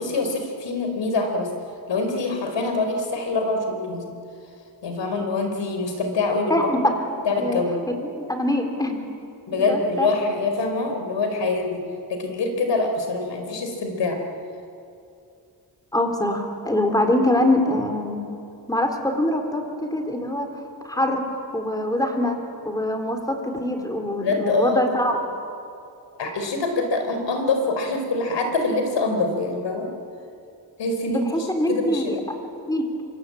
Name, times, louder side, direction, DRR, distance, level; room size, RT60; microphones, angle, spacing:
voice 1, 0.0-1.5 1.9-4.0 4.8-6.6 7.3-7.8 9.5-11.8 12.1-14.2 24.2-24.8 26.2-29.9 30.8-31.2 31.7-32.0, left 3 dB, 90° left, 5 dB, 4.3 m, -24 dB
voice 2, 6.5-6.9 7.4-7.6 8.0-9.0 9.5-10.1 15.9-18.2 18.7-20.5 20.8-21.2 21.5-22.4 22.6-25.2 31.1-32.2 32.7-32.9, left 1 dB, 10° left, 4 dB, 3.8 m, -23 dB
26.0 x 24.5 x 8.7 m, 2.5 s
wide cardioid pair, 110°, 42 cm